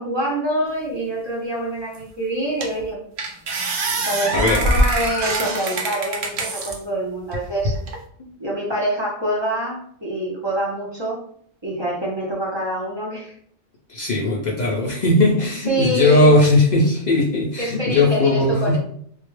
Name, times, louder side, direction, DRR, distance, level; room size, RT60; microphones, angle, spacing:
voice 1, 0.0-3.0 4.0-7.8 8.4-11.2 11.6-13.3 15.7-16.3 17.6-18.8, right 1 dB, 35° right, -5 dB, 0.5 m, -25 dB
sound 1, 1.9-2.0 2.6-2.8 3.2-6.8 7.3-8.0, right 2 dB, 70° right, 0.8 m, -23 dB
voice 2, 4.3-4.7 8.2-8.3 13.9-18.8, left 2 dB, 60° left, -3 dB, 0.4 m, -18 dB
2.2 x 2.0 x 3.0 m, 0.64 s
omnidirectional pair, 1.2 m